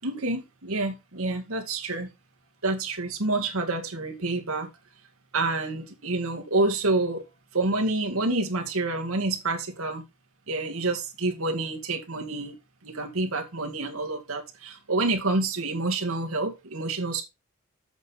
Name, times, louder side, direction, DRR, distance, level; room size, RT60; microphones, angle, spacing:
voice 1, 0.0-2.1 2.6-4.7 5.3-7.3 7.5-10.0 10.5-17.2, right 2 dB, 80° right, 2.0 m, -28 dB
8.1 x 6.5 x 4.2 m
head